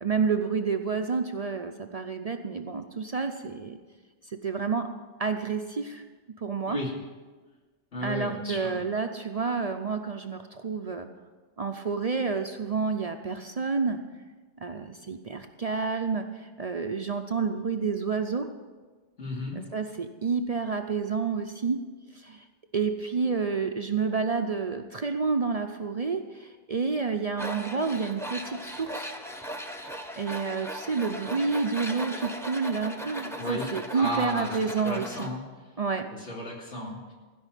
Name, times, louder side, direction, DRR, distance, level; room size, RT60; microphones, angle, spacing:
voice 1, 0.0-3.8 4.4-4.8 5.2-6.0 6.4-6.8 8.0-11.1 11.6-14.0 14.6-16.2 16.6-18.5 19.5-21.8 22.7-26.2 26.7-29.1 30.2-35.3 35.8-36.1, right 5 dB, 45° right, 6 dB, 0.6 m, -29 dB
voice 2, 7.9-8.8 19.2-19.6 33.4-35.4 36.1-37.1, left 1 dB, 80° left, -3 dB, 3.0 m, -34 dB
Tools, 27.4-35.3, equal, 5° left, 0.8 m, -38 dB
16.0 x 5.5 x 9.0 m, 1.3 s
omnidirectional pair, 1.2 m